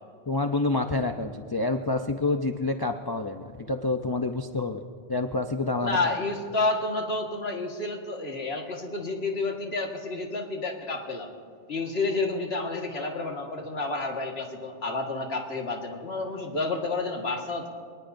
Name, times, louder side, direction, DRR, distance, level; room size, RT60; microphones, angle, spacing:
voice 1, 0.3-4.8 5.1-6.0, left 2 dB, 30° left, 5 dB, 0.4 m, -28 dB
voice 2, 5.8-11.3 11.7-17.7, left 3 dB, 60° left, 1 dB, 1.9 m, -30 dB
27.5 x 19.0 x 2.7 m, 2.1 s
omnidirectional pair, 1.2 m